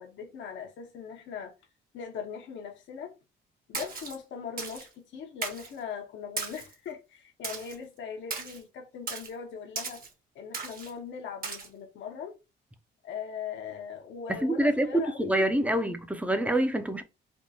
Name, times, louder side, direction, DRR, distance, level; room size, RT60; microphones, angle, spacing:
voice 1, 0.0-1.5 1.9-3.1 3.7-10.0 10.3-12.4 13.0-15.4 15.8-16.0, left 7 dB, 70° left, 0.8 m, -40 dB
Splash splatter, 3.7-4.2 4.6-4.9 5.4-5.7 6.4-6.7 7.4-7.8 8.3-8.6 9.1-9.3 9.8-10.1 10.5-10.9 11.4-11.7, right 4 dB, 45° right, 1.0 m, -36 dB
voice 2, 14.4-17.0, right 1 dB, 5° right, 0.5 m, -26 dB
3.5 x 2.3 x 2.7 m
cardioid pair, 90°, 20 cm